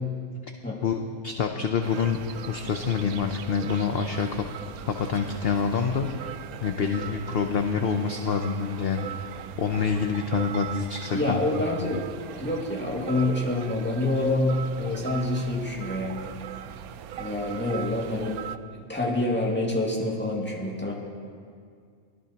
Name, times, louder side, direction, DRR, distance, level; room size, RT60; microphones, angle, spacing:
voice 1, 0.8-2.2 2.5-4.5 4.9-6.3 6.6-9.1 9.6-11.4 11.8-12.0, left 6 dB, 50° left, 5 dB, 0.8 m, -27 dB
sound 1, 1.8-18.6, right 10 dB, 80° right, 1.0 m, -40 dB
sound 2, 1.9-7.5, left 1 dB, 10° right, 4.1 m, -49 dB
voice 2, 11.1-12.0 12.4-16.2 17.2-18.4 18.9-20.9, left 2 dB, 5° left, -3 dB, 2.0 m, -27 dB
23.0 x 16.0 x 2.9 m, 2.1 s
omnidirectional pair, 1.5 m